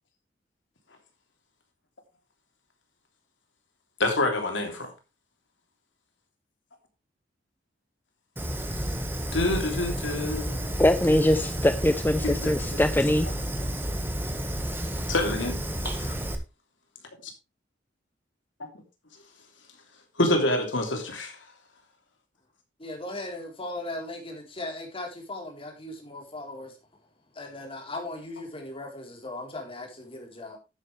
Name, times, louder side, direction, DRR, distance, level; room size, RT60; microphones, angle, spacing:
voice 1, 4.0-4.9 8.8-8.9 9.3-10.7 12.2-12.5 15.1-15.6 15.8-16.1 18.6-18.7 20.2-21.4, left 1 dB, 75° left, 3.1 m, -27 dB
Fire, 8.4-16.4, equal, 10° right, 1.6 m, -31 dB
voice 2, 10.8-13.3, left 1 dB, 10° left, 0.7 m, -22 dB
voice 3, 22.8-26.8 27.3-30.6, left 2 dB, 30° left, 3.8 m, -38 dB
11.5 x 9.1 x 3.3 m
head